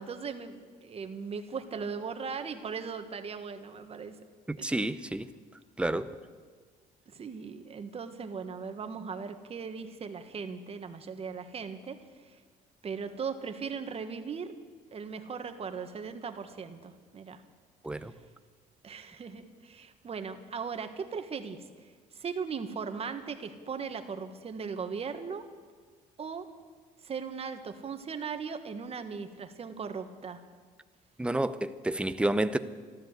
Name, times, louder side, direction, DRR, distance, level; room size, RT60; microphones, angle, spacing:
voice 1, 0.0-4.1 4.6-4.9 7.1-12.4 12.8-14.5 14.9-17.4 18.8-25.4 26.2-26.5 27.0-30.4, right 5 dB, 35° right, 8 dB, 1.4 m, -38 dB
voice 2, 4.5-5.3 5.8-6.1 17.8-18.1 31.2-32.6, right 1 dB, 5° right, 12 dB, 0.7 m, -29 dB
13.0 x 13.0 x 8.0 m, 1.5 s
cardioid pair, 110°, 17 cm